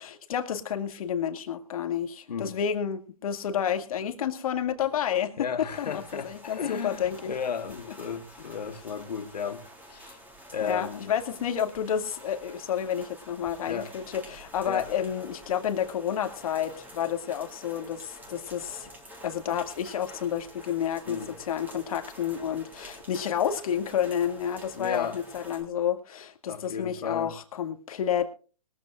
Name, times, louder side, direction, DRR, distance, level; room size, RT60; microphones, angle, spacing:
voice 1, 0.0-7.4 10.6-18.9 19.2-28.3, left 9 dB, 60° left, 2.2 m, -30 dB
voice 2, 5.4-10.2 10.5-11.1 13.6-13.9 14.7-14.9 19.5-19.6 21.1-21.4 24.7-25.2 26.5-27.4, left 6 dB, 75° left, 1.7 m, -34 dB
sound 1, 5.7-25.6, equal, 10° right, 3.9 m, -48 dB
22.0 x 14.0 x 2.5 m
hypercardioid pair, 140°, 21 cm